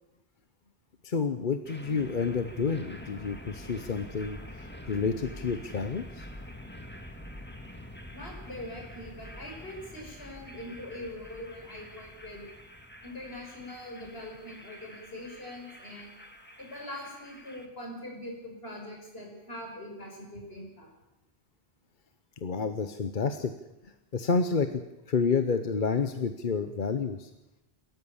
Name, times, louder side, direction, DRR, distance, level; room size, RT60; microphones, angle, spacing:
voice 1, 1.0-6.3 22.4-23.5 24.1-24.8 25.1-27.3, left 5 dB, 50° left, 9 dB, 1.1 m, -29 dB
sound 1, 1.7-17.7, equal, 10° left, 2.0 m, -46 dB
voice 2, 8.1-12.4 13.0-16.1 16.6-20.9, left 1 dB, 65° left, 0 dB, 6.4 m, -42 dB
28.0 x 14.0 x 7.2 m, 0.95 s
omnidirectional pair, 1.1 m